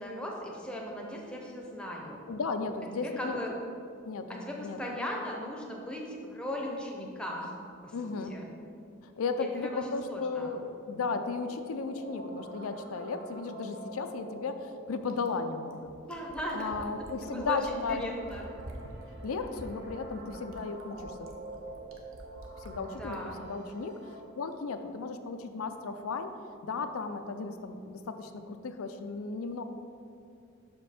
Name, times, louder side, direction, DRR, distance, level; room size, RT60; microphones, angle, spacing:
voice 1, 0.0-2.2 3.0-3.5 4.4-7.5 7.8-8.5 9.4-10.5 16.1-18.5 22.9-23.4, equal, 5° left, -1 dB, 0.7 m, -38 dB
voice 2, 2.3-3.4 4.0-4.8 7.9-8.4 9.0-10.6 10.9-15.9 16.5-18.0 19.2-21.3 22.6-23.9 24.4-26.3 26.6-29.6, left 4 dB, 85° left, 8 dB, 0.5 m, -35 dB
sound 1, 10.7-24.2, right 1 dB, 55° right, 0.7 m, -47 dB
Fill (with liquid), 15.1-23.2 24.5-24.6, right 1 dB, 80° right, 0.8 m, -48 dB
6.1 x 5.1 x 4.3 m, 2.5 s
head